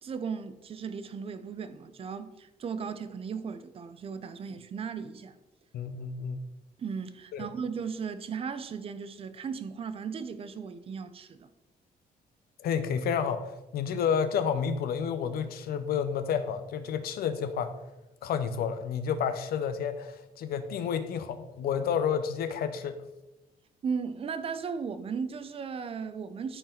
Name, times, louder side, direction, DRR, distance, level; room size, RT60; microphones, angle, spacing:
voice 1, 0.0-5.3 6.8-11.5 23.8-26.6, right 6 dB, 35° right, 0.6 m, -36 dB
voice 2, 5.7-6.4 7.3-7.5 12.6-13.5 13.7-17.7 18.2-23.0, left 7 dB, 70° left, 0.8 m, -30 dB
13.5 x 4.6 x 3.9 m
cardioid pair, 150°, 16 cm